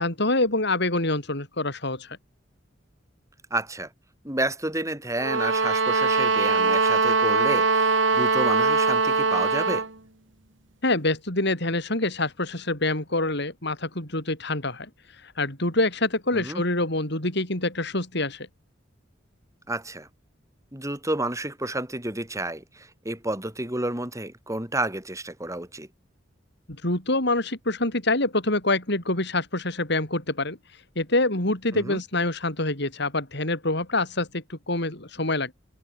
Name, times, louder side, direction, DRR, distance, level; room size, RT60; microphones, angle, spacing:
voice 1, 0.0-2.2 10.8-14.9 15.2-18.5 26.8-30.6 30.9-35.5, left 2 dB, 65° left, 6.7 m, -26 dB
voice 2, 3.5-3.9 4.2-9.9 16.3-16.6 19.7-20.1 20.7-25.9 31.7-32.0, right 1 dB, 15° right, 5.5 m, -30 dB
sound 1, 5.2-9.9, right 4 dB, 80° right, 3.2 m, -22 dB
head